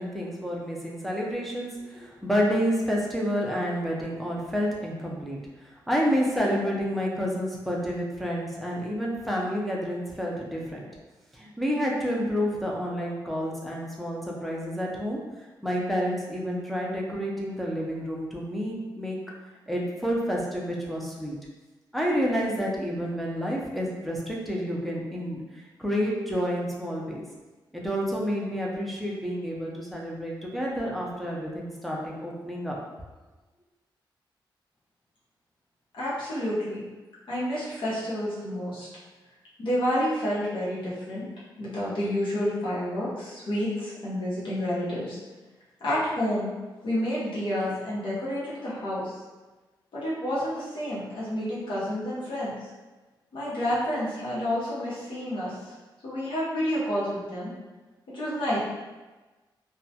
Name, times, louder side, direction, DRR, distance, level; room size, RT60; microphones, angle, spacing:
voice 1, 0.0-10.8 11.3-15.2 15.6-19.2 19.7-21.4 21.9-25.4 25.8-27.2 27.7-32.8, equal, ahead, -3 dB, 0.5 m, -29 dB
voice 2, 35.9-36.8 37.3-38.9 39.6-41.2 41.6-45.2 45.8-46.5 46.8-49.1 49.9-52.7 53.3-55.7 56.0-57.5 58.1-58.6, equal, 75° left, -9 dB, 0.8 m, -29 dB
2.2 x 2.1 x 2.7 m, 1.2 s
cardioid pair, 90°, 8 cm